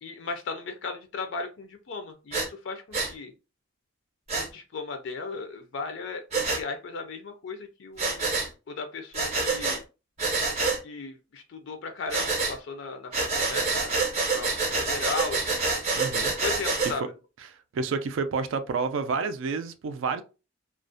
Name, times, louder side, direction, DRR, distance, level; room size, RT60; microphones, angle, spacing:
voice 1, 0.0-3.3 4.3-8.4 8.7-9.8 10.8-15.7 16.4-17.0, left 4 dB, 65° left, 0.4 m, -36 dB
Breathing, 2.3-2.5 2.9-3.1 4.3-4.5 6.3-6.6 8.0-8.5 9.1-9.8 10.2-10.8 12.1-12.5 13.1-16.9, right 3 dB, 30° right, 0.6 m, -27 dB
voice 2, 15.9-16.3 16.8-17.0 17.5-20.2, right 4 dB, 75° right, 0.3 m, -29 dB
2.4 x 2.0 x 2.5 m
head